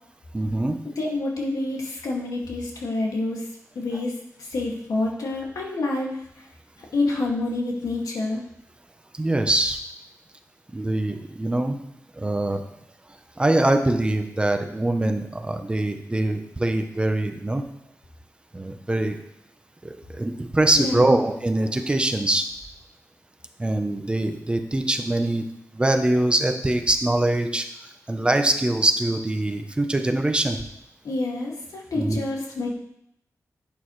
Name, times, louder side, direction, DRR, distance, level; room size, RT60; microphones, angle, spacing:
voice 1, 0.3-0.8 9.2-9.8 10.7-11.8 12.2-12.6 13.4-17.6 18.5-19.2 19.8-22.5 23.6-25.4 25.7-27.7 28.1-30.6 32.0-32.2, right 1 dB, 15° right, 6 dB, 0.7 m, -23 dB
voice 2, 1.0-3.5 3.8-6.5 6.9-8.4 20.8-21.2 31.0-32.7, left 2 dB, 80° left, -1 dB, 2.1 m, -28 dB
11.5 x 8.7 x 3.2 m, 0.79 s
wide cardioid pair, 160°, 6 cm